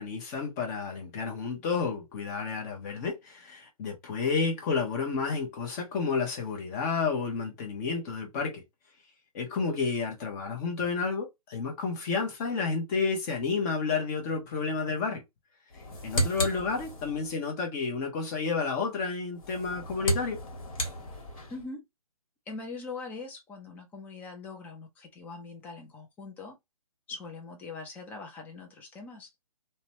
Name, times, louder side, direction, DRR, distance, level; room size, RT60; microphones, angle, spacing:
voice 1, 0.0-8.6 9.3-15.2 15.7-20.4, left 4 dB, 25° left, 0.9 m, -31 dB
sound 1, 15.7-17.3 19.3-21.6, equal, 60° left, 1.5 m, -33 dB
voice 2, 21.5-21.8 22.5-26.6 27.1-29.3, left 3 dB, 10° left, 0.5 m, -42 dB
2.8 x 2.2 x 2.7 m
hypercardioid pair, 145°, 19 cm